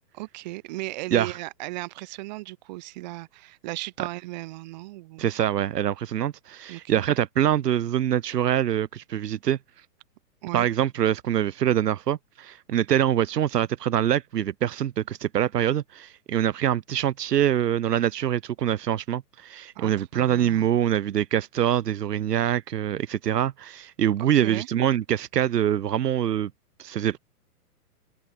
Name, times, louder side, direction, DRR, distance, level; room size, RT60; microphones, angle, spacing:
voice 1, 0.1-5.2 6.7-7.0 10.4-10.7 19.7-20.7 24.3-24.7, right 20 dB, 25° right, 4.5 m, -36 dB
voice 2, 5.2-9.6 10.5-26.5 26.8-27.2, right 10 dB, 85° right, 1.1 m, -24 dB
open air
hypercardioid pair, 175°, 47 cm